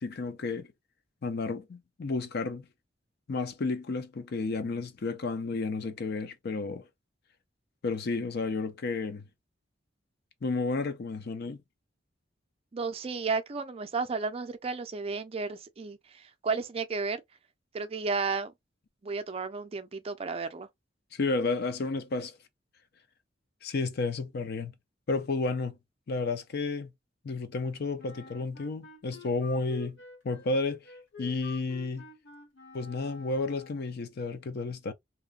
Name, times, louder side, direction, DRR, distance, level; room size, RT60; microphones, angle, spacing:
voice 1, 0.0-0.7 1.2-2.6 3.3-6.9 7.8-9.3 10.4-11.6 21.1-22.4 23.6-24.7 25.1-25.8 26.1-26.9 27.2-30.0 30.2-30.9 31.2-32.1 32.7-34.9, left 3 dB, 55° left, 0.5 m, -32 dB
voice 2, 12.7-17.2 17.7-18.5 19.0-20.7, right 4 dB, 30° right, 0.4 m, -33 dB
Wind instrument woodwind instrument, 28.0-34.0, left 4 dB, 90° left, 1.2 m, -49 dB
2.9 x 2.1 x 2.3 m
head